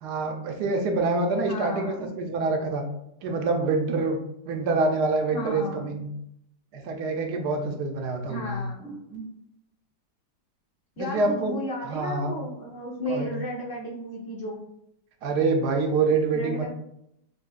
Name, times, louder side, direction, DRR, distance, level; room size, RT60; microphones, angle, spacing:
voice 1, 0.0-2.8 3.2-4.2 4.5-6.1 6.7-8.6 11.0-11.6 11.9-12.4 13.1-13.3 15.2-16.7, right 3 dB, 75° right, 3 dB, 1.2 m, -26 dB
voice 2, 1.4-2.1 5.3-6.0 8.3-9.3 11.0-14.6 16.3-16.7, equal, 55° left, -3 dB, 1.1 m, -34 dB
6.0 x 2.6 x 2.4 m, 0.77 s
omnidirectional pair, 1.8 m